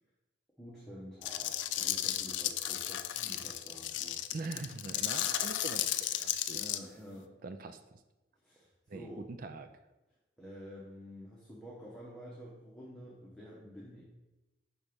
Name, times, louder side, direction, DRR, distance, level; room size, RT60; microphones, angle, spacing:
voice 1, 0.6-4.2 6.5-7.3 8.4-9.2 10.4-14.0, equal, ahead, -7 dB, 1.0 m, -49 dB
sound 1, 1.2-6.8, left 12 dB, 75° left, 0.4 m, -34 dB
voice 2, 4.3-6.6 7.4-8.0 8.9-9.7, right 3 dB, 50° right, 8 dB, 0.4 m, -43 dB
6.0 x 4.2 x 5.1 m, 1.0 s
head